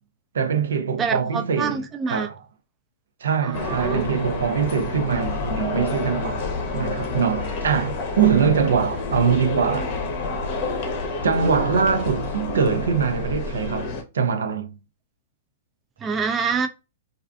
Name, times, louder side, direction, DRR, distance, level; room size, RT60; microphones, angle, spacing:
voice 1, 0.3-2.4 3.2-6.5 6.7-9.9 11.2-14.7, right 6 dB, 85° right, 0.4 m, -23 dB
voice 2, 1.0-2.3 3.4-4.1 16.0-16.7, right 5 dB, 20° right, 0.3 m, -26 dB
sound 1, 3.5-14.0, left 3 dB, 45° left, 0.7 m, -28 dB
2.4 x 2.4 x 2.3 m
hypercardioid pair, 140°, 0 cm